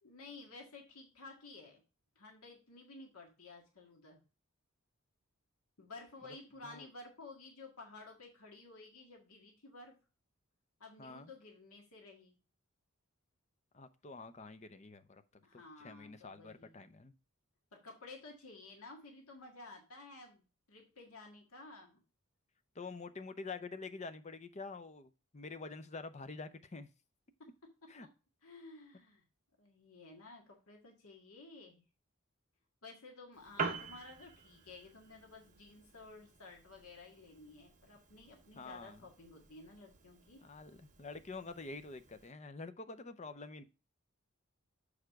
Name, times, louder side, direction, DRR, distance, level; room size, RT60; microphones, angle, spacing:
voice 1, 0.0-1.8 2.2-4.2 5.8-9.9 10.8-12.4 15.4-16.8 17.7-22.0 28.4-29.2 29.6-31.8 32.8-40.4, left 3 dB, 80° left, 1.8 m, -53 dB
voice 2, 11.0-11.3 13.7-17.1 22.7-26.9 27.9-28.1 33.6-33.7 38.6-39.1 40.4-43.6, left 3 dB, 30° left, 0.5 m, -47 dB
Piano, 33.3-42.3, right 4 dB, 35° right, 1.0 m, -47 dB
6.8 x 4.9 x 4.6 m
head